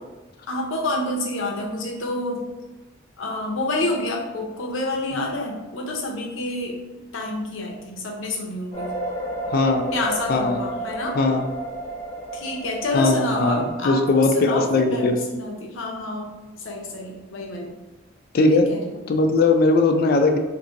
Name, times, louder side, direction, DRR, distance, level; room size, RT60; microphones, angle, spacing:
voice 1, 0.5-2.5 3.2-6.8 7.1-8.9 9.9-11.2 12.3-16.3 16.6-17.8 18.5-19.0, left 2 dB, 85° left, 0 dB, 0.7 m, -28 dB
sound 1, 8.7-13.7, right 2 dB, 20° left, 0.8 m, -31 dB
voice 2, 9.5-9.9 10.3-10.6 11.2-11.5 12.9-13.6 13.8-15.2 18.3-18.7 19.1-20.4, left 3 dB, 50° left, 5 dB, 0.3 m, -19 dB
2.6 x 2.5 x 3.9 m, 1.1 s
head